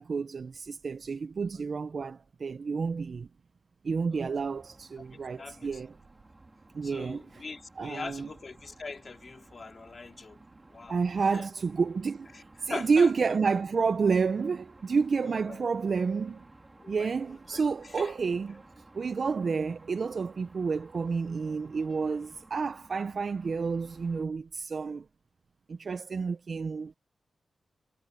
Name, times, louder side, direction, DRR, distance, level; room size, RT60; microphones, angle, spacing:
voice 1, 0.0-3.3 3.8-5.9 6.7-7.4 7.8-8.3 10.9-12.3 12.6-16.4 16.9-18.6 18.9-25.0 25.7-27.0, right 5 dB, 50° right, 0.5 m, -30 dB
sound 1, 4.4-24.2, right 2 dB, 20° right, 3.2 m, -56 dB
voice 2, 5.1-5.7 6.8-10.4 10.7-11.0 11.3-11.5 12.3-13.1 15.2-15.6 16.8-17.1 17.5-17.6 17.9-18.1, left 4 dB, 40° left, 2.6 m, -42 dB
wide cardioid pair, 125°, 0 cm